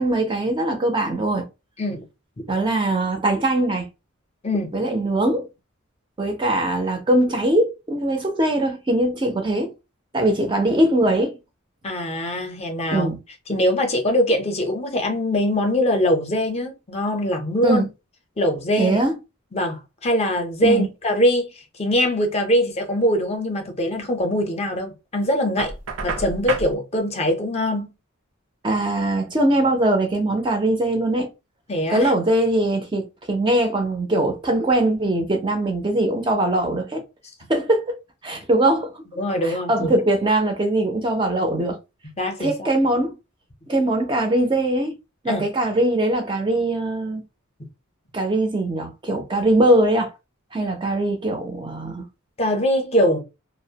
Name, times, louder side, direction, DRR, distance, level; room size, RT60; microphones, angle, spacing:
voice 1, 0.0-1.4 2.5-3.9 4.7-5.5 6.2-9.7 10.1-11.4 12.9-13.2 17.6-17.8 18.8-19.1 20.6-20.9 28.6-31.3 31.9-37.0 37.5-37.9 38.2-39.0 39.4-41.8 42.4-43.1 43.7-44.9 45.2-47.2 48.1-50.1 50.5-52.0, right 1 dB, 20° right, 0.4 m, -21 dB
voice 2, 11.8-13.1 13.5-17.9 18.4-19.0 19.5-25.7 26.0-27.9 31.7-32.1 39.2-39.9 42.2-42.7 45.3-45.4 52.4-53.2, left 1 dB, 30° left, 0.5 m, -22 dB
Knock, 25.6-26.7, right 4 dB, 80° right, 0.5 m, -29 dB
2.3 x 2.0 x 2.7 m
head